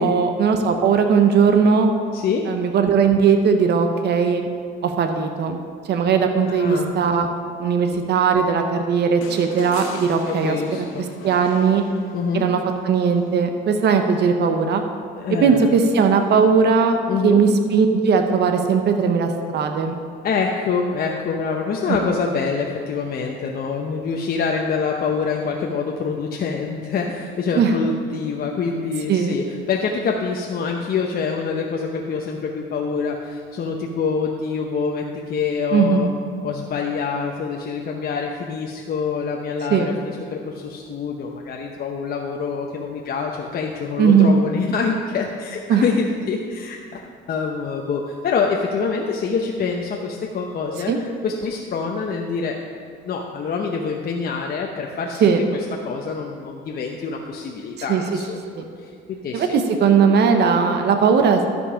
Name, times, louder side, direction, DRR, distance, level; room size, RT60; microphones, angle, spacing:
voice 1, 0.0-1.9 2.5-4.5 4.8-5.6 5.9-7.3 7.6-10.6 11.2-11.8 12.3-12.6 12.8-14.8 15.4-17.0 17.2-20.0 21.9-22.0 27.5-27.7 29.1-29.3 35.7-36.1 39.7-39.9 44.0-44.4 45.7-45.8 50.9-51.0 55.2-55.4 57.9-58.0 58.5-58.6 59.3-61.4, right 6 dB, 55° right, 5 dB, 0.9 m, -18 dB
voice 2, 2.1-2.5 6.5-6.9 7.9-8.0 10.2-11.0 12.1-12.5 15.2-15.7 17.1-17.4 20.2-36.1 36.4-47.0 47.3-52.6 53.0-55.3 55.8-58.4 58.8-59.6, left 5 dB, 45° left, 0 dB, 0.8 m, -25 dB
sound 1, 9.2-12.5 14.1-14.2, left 4 dB, 80° left, 1.6 m, -39 dB
13.0 x 5.3 x 5.0 m, 2.3 s
cardioid pair, 95°, 21 cm